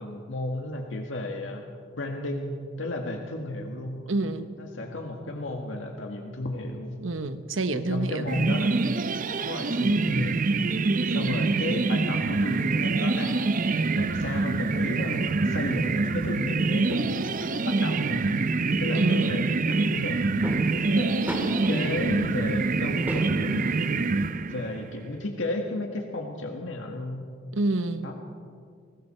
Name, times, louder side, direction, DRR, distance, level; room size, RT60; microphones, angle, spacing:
voice 1, 0.0-1.7 2.0-4.1 4.6-6.9 7.9-8.8 9.4-10.6 11.1-13.6 13.9-18.3 18.8-20.2 20.9-23.7 24.5-27.3 28.0-28.1, left 2 dB, 75° left, 2 dB, 1.9 m, -33 dB
voice 2, 4.1-4.5 7.0-8.3 18.9-19.5 27.5-28.1, right 2 dB, 85° right, 10 dB, 1.1 m, -28 dB
sound 1, 8.3-24.9, right 3 dB, 45° right, 0.6 m, -25 dB
sound 2, 16.5-25.4, equal, 10° right, 3.2 m, -40 dB
29.5 x 19.5 x 4.4 m, 2.1 s
head